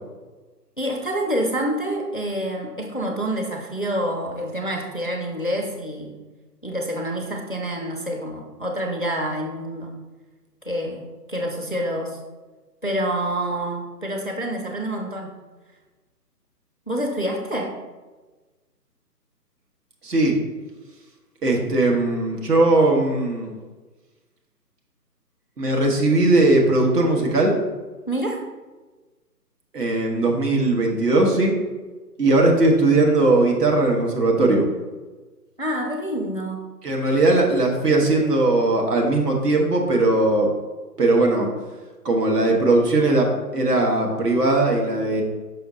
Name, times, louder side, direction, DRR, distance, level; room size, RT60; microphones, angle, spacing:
voice 1, 0.8-6.2 6.6-10.0 10.6-12.2 12.8-15.4 16.9-17.8 28.1-28.5 35.6-36.6, right 1 dB, 35° left, 1 dB, 0.4 m, -27 dB
voice 2, 20.0-20.4 21.4-23.6 25.6-27.5 29.7-31.6 32.2-34.7 36.8-40.5 41.0-41.5 42.0-45.2, right 2 dB, 70° right, 0 dB, 1.5 m, -19 dB
6.4 x 5.3 x 2.8 m, 1.3 s
figure-of-eight pair, 150°, 49 cm